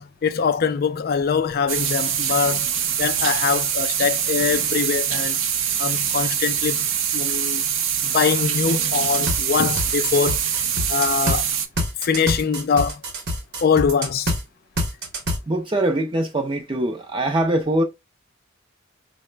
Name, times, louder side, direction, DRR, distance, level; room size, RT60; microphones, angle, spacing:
voice 1, 0.0-2.7 3.0-5.4 5.8-6.8 7.1-7.6 8.0-10.4 10.9-11.5 12.0-13.0 13.6-14.3, left 6 dB, 45° left, 0.3 m, -23 dB
sound 1, 1.7-11.7, right 8 dB, 70° right, 0.5 m, -24 dB
sound 2, 9.0-11.4 11.8-14.4 14.8-15.4, equal, 50° right, 0.9 m, -26 dB
voice 2, 15.5-17.8, right 1 dB, 25° right, 0.5 m, -22 dB
4.6 x 2.1 x 3.2 m
head